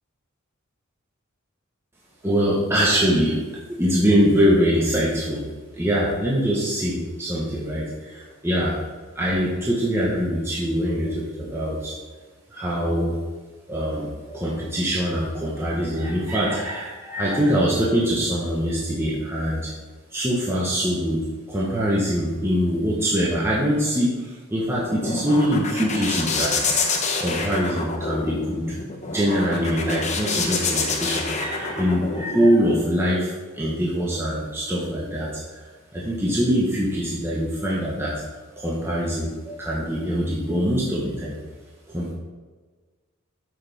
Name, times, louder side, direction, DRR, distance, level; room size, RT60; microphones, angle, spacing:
voice 1, 2.2-3.4 3.8-5.4 5.7-8.8 9.1-12.0 12.5-13.2 13.7-19.7 20.1-21.2 21.5-26.8 27.2-28.8 29.1-38.2 38.6-41.4 41.9-42.1, equal, 10° right, -6 dB, 1.2 m, -23 dB
sound 1, 24.6-32.5, left 4 dB, 35° left, 0.9 m, -27 dB
8.7 x 6.5 x 3.5 m, 1.4 s
head